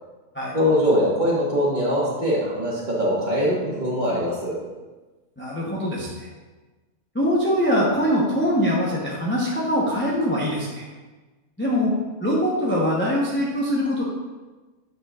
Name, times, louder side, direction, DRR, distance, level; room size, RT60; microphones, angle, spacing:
voice 1, 0.5-4.6, equal, 30° right, -6 dB, 1.6 m, -22 dB
voice 2, 5.4-6.3 7.1-10.8 11.6-11.9 12.2-14.0, equal, 10° left, -5 dB, 0.7 m, -23 dB
7.5 x 5.9 x 2.4 m, 1.2 s
omnidirectional pair, 1.6 m